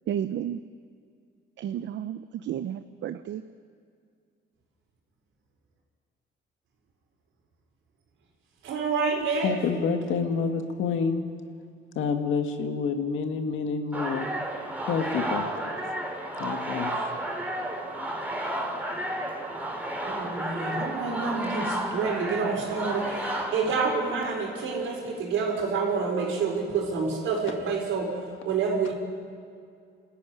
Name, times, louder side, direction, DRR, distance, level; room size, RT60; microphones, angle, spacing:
voice 1, 0.1-0.6 1.6-3.4, right 10 dB, 70° right, 11 dB, 0.7 m, -32 dB
voice 2, 8.6-9.5 20.0-28.9, right 4 dB, 85° right, 1 dB, 5.0 m, -28 dB
voice 3, 9.4-11.2 12.0-14.3 14.9-15.4 16.4-16.9, left 5 dB, 80° left, 6 dB, 2.0 m, -28 dB
sound 1, 13.9-24.4, right 1 dB, 10° right, 3.6 m, -32 dB
26.0 x 14.0 x 9.8 m, 2.3 s
cardioid pair, 90°, 20 cm